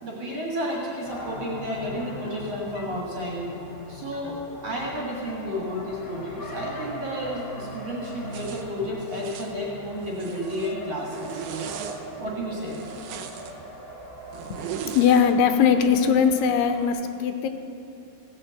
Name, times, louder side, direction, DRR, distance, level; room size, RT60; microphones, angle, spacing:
voice 1, 0.0-3.4 3.9-11.4 12.2-12.8, equal, 50° right, -3 dB, 2.2 m, -32 dB
sound 1, 0.8-10.3, left 2 dB, 70° left, 2.2 m, -45 dB
Race car auto racing, 1.0-16.9, equal, 15° left, 2.4 m, -41 dB
Zipper (clothing), 8.3-8.6 9.1-9.5 10.0-10.7 11.1-12.0 12.6-13.5 14.3-15.3, right 8 dB, 85° right, 1.7 m, -37 dB
voice 2, 14.9-17.5, left 7 dB, 85° left, 8 dB, 2.7 m, -20 dB
16.5 x 6.6 x 7.6 m, 2.6 s
omnidirectional pair, 4.6 m